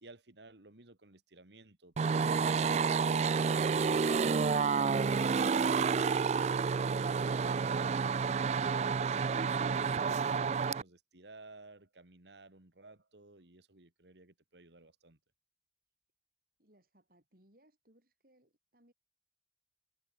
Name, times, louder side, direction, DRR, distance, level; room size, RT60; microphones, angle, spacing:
voice 1, 0.0-4.8 8.4-15.2, right 2 dB, 75° right, 2.3 m, -57 dB
sound 1, 2.0-10.8, right 5 dB, 40° right, 0.3 m, -29 dB
voice 2, 16.6-18.9, right 1 dB, 55° right, 7.6 m, -67 dB
head